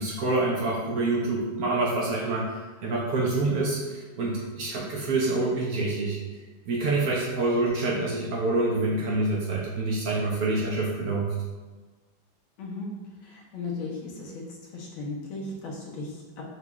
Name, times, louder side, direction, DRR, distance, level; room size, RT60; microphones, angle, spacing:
voice 1, 0.0-6.2 6.7-11.3, right 2 dB, 80° right, -3 dB, 0.8 m, -27 dB
voice 2, 13.2-14.4 14.7-16.4, left 3 dB, 80° left, -3 dB, 1.6 m, -36 dB
5.9 x 2.3 x 3.0 m, 1.3 s
omnidirectional pair, 2.2 m